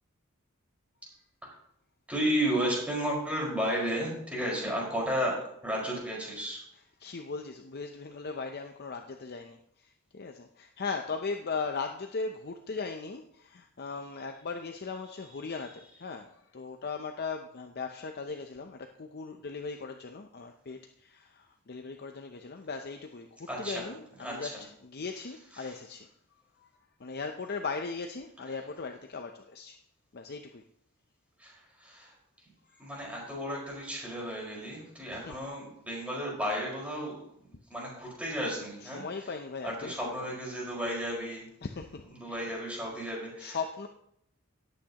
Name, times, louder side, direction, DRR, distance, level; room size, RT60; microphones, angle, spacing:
voice 1, 2.1-5.3 5.6-6.6 23.5-23.9 24.2-24.5 31.4-31.5 31.8-32.1 32.8-37.2 37.7-39.0 39.6-41.4 42.2-43.6, equal, 5° right, -3 dB, 4.9 m, -33 dB
voice 2, 6.7-26.1 26.6-26.7 27.0-29.8 30.1-30.6 32.7-32.8 34.5-35.5 38.8-40.3 41.6-42.5 43.4-43.9, left 4 dB, 50° left, 5 dB, 0.6 m, -38 dB
17.5 x 8.5 x 2.9 m, 0.73 s
head